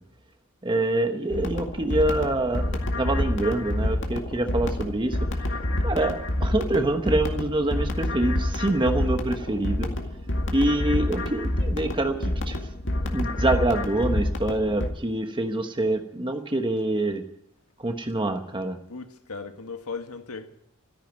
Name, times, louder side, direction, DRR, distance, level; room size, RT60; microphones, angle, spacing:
voice 1, 0.6-5.3 5.8-9.9 10.5-12.6 13.0-17.2 17.8-18.8, right 1 dB, 20° right, 1.1 m, -26 dB
sound 1, 1.3-14.9, left 1 dB, 55° left, 2.2 m, -28 dB
sound 2, 2.0-9.2 10.3-10.4, equal, 40° left, 4.2 m, -46 dB
voice 2, 18.9-20.5, left 4 dB, 90° left, 1.7 m, -37 dB
14.0 x 10.5 x 9.1 m
head